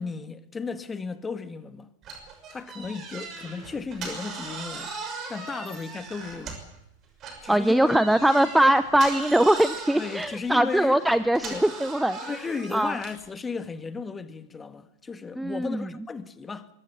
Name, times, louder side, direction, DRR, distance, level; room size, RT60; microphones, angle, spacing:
voice 1, 0.0-1.9 2.5-4.9 5.3-6.6 7.4-8.1 9.9-11.0 11.4-11.7 12.2-16.7, left 4 dB, 15° left, 1.7 m, -34 dB
sound 1, 2.0-6.8 7.2-13.3, right 4 dB, 30° right, 5.9 m, -39 dB
voice 2, 7.5-12.2 12.7-12.9 15.4-15.9, right 1 dB, 5° right, 0.8 m, -21 dB
24.5 x 21.5 x 7.2 m
figure-of-eight pair, 90°, 0 cm